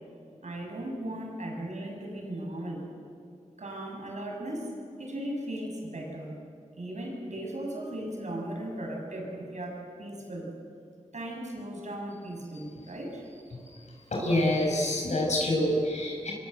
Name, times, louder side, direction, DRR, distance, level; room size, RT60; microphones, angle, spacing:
voice 1, 0.4-2.9 3.6-4.7 5.0-6.4 6.8-10.5 11.1-13.6, right 1 dB, 75° right, 1 dB, 7.4 m, -37 dB
voice 2, 14.1-16.3, left 1 dB, 70° left, -2 dB, 6.7 m, -26 dB
27.0 x 24.0 x 8.0 m, 2.3 s
cardioid pair, 45°, 12 cm